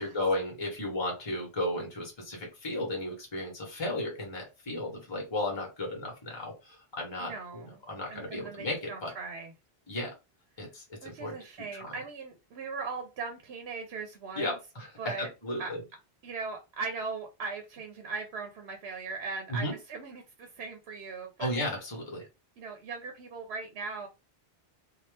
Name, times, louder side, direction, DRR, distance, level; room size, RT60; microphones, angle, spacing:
voice 1, 0.0-9.1 9.9-10.1 10.6-11.4 11.7-12.0 14.4-15.8 19.5-19.7 21.4-22.2, left 1 dB, 25° left, 1.1 m, -34 dB
voice 2, 7.2-7.7 8.1-9.5 11.0-14.6 15.0-15.3 15.6-15.7 16.2-21.5 22.6-24.1, right 4 dB, 80° right, 0.9 m, -39 dB
2.7 x 2.3 x 3.3 m
omnidirectional pair, 1.1 m